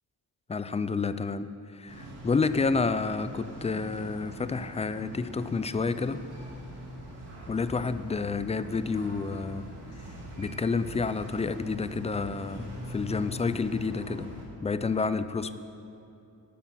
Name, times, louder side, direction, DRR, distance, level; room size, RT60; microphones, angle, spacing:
voice 1, 0.5-6.2 7.5-9.7 10.4-14.3 14.6-15.5, left 4 dB, 15° left, 13 dB, 0.4 m, -29 dB
sound 1, 1.9-14.5, equal, 75° right, 2.7 m, -42 dB
12.0 x 5.9 x 7.5 m, 2.8 s
cardioid pair, 70°, 40 cm